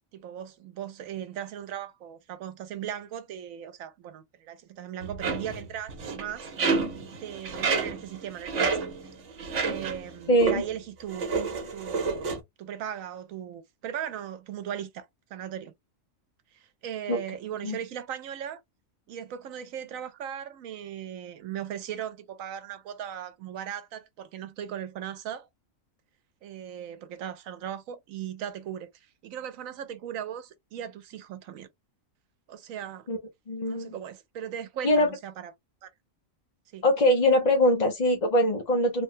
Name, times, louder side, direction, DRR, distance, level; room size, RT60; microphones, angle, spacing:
voice 1, 0.1-6.5 7.2-8.9 9.6-11.3 11.7-15.7 16.5-18.6 19.1-25.5 26.4-31.7 32.5-33.1 33.6-35.5 35.8-35.9 36.7-36.8, right 9 dB, 85° right, 1.1 m, -38 dB
sound 1, 5.0-10.1 10.4-10.7 11.1-12.4, right 4 dB, 65° right, 1.2 m, -30 dB
voice 2, 10.3-10.6 17.1-17.2 17.6-17.8 33.1-33.2 33.5-33.9 34.8-35.1 36.8-39.0, left 1 dB, 45° left, 0.7 m, -22 dB
3.4 x 2.2 x 2.7 m
omnidirectional pair, 1.4 m